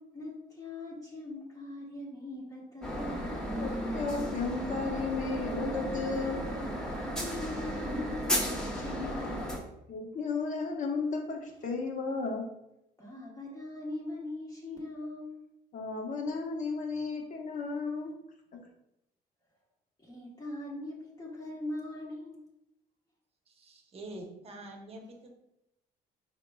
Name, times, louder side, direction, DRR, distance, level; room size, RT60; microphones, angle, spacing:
voice 1, 0.1-3.4 6.9-9.5 13.0-15.4 20.0-22.4, left 2 dB, 20° left, -4 dB, 1.0 m, -41 dB
sound 1, 2.8-9.6, equal, 5° left, 0.7 m, -34 dB
voice 2, 3.6-6.4 9.9-12.4 15.7-18.1 18.5-18.7, left 4 dB, 50° left, 1 dB, 0.9 m, -34 dB
voice 3, 23.5-25.3, right 1 dB, 35° right, 2 dB, 0.8 m, -46 dB
4.4 x 3.7 x 2.3 m, 0.84 s
cardioid pair, 110°, 17 cm